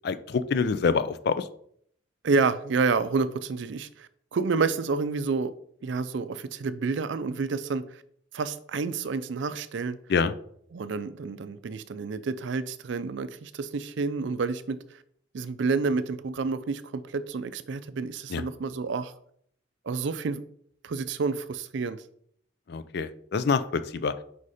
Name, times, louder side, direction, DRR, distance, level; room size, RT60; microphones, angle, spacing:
voice 1, 0.0-1.5 10.1-10.3 18.3-18.4 22.7-24.1, left 5 dB, 55° left, 0.4 m, -26 dB
voice 2, 2.2-5.5 5.8-8.0 8.3-10.0 10.7-15.0 15.3-19.1 19.9-20.4 20.8-22.0, right 4 dB, 65° right, 0.4 m, -29 dB
5.0 x 4.2 x 4.9 m
head